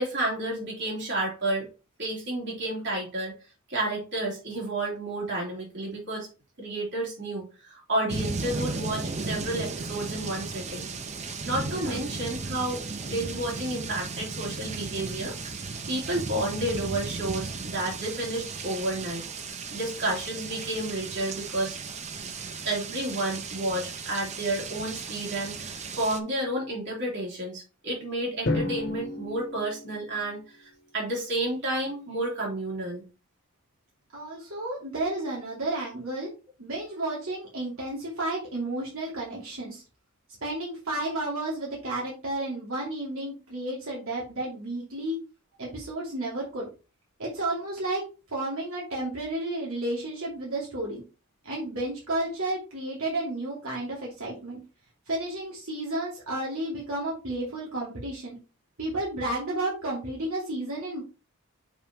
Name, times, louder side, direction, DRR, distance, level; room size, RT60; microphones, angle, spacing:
voice 1, 0.0-1.7 2.0-3.4 3.7-6.3 6.6-10.9 11.4-19.2 19.7-21.8 22.6-33.0, right 1 dB, 55° right, -3 dB, 3.2 m, -31 dB
sound 1, 8.1-26.2, right 4 dB, 30° right, 0.6 m, -35 dB
voice 2, 11.7-12.0 34.1-36.3 36.6-39.8 40.4-45.2 45.6-46.7 47.2-51.0 51.4-54.6 55.1-58.4 58.8-61.0, right 2 dB, 75° right, -4 dB, 2.5 m, -32 dB
Drum, 28.5-30.6, left 2 dB, 50° left, 1.4 m, -32 dB
6.7 x 5.5 x 3.0 m, 0.31 s
head